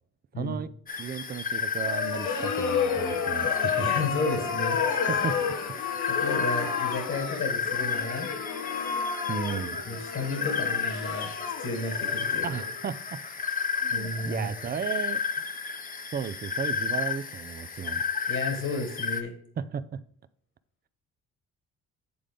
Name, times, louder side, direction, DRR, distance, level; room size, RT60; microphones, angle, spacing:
voice 1, 0.4-0.7 1.0-3.9 5.1-5.4 9.3-9.8 12.4-13.2 13.8-15.2 16.1-18.0 19.6-20.0, right 7 dB, 30° right, 14 dB, 0.4 m, -34 dB
sound 1, 0.9-19.2, left 6 dB, 30° left, 0.8 m, -32 dB
sound 2, 1.8-12.8, left 7 dB, 90° left, 1.0 m, -31 dB
voice 2, 3.7-4.8 6.1-8.3 9.9-11.3 11.6-12.5 13.9-14.5 18.3-19.3, left 3 dB, 50° left, 5 dB, 1.5 m, -32 dB
8.5 x 3.8 x 5.0 m, 0.64 s
cardioid pair, 90°, 30 cm